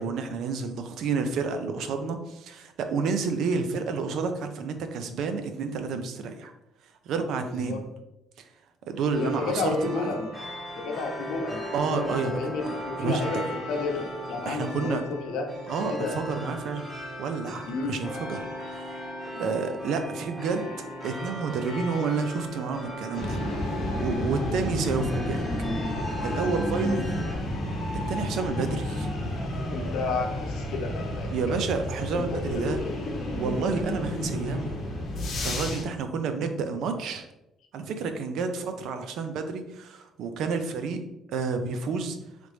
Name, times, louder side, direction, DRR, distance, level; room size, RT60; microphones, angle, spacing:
voice 1, 0.0-6.5 7.1-7.8 8.4-8.5 8.9-10.0 11.7-12.4 13.0-13.3 14.5-15.0 15.7-16.9 17.2-18.9 19.4-20.7 21.0-23.4 24.0-25.4 26.2-27.2 28.1-29.1 31.3-32.8 33.4-34.8 35.4-37.3 37.7-41.0 41.3-42.2, right 4 dB, 65° right, 7 dB, 0.5 m, -30 dB
voice 2, 7.4-7.8 9.1-10.3 10.7-11.6 11.9-15.5 15.9-16.1 17.7-17.9 26.8-27.0 29.7-31.3 32.1-33.0, left 3 dB, 80° left, 3 dB, 0.7 m, -31 dB
sound 1, 9.1-27.3, equal, 5° left, 1.3 m, -38 dB
sound 2, 23.1-35.8, left 1 dB, 45° left, 0.9 m, -31 dB
3.9 x 3.4 x 3.2 m, 0.89 s
cardioid pair, 155°, 0 cm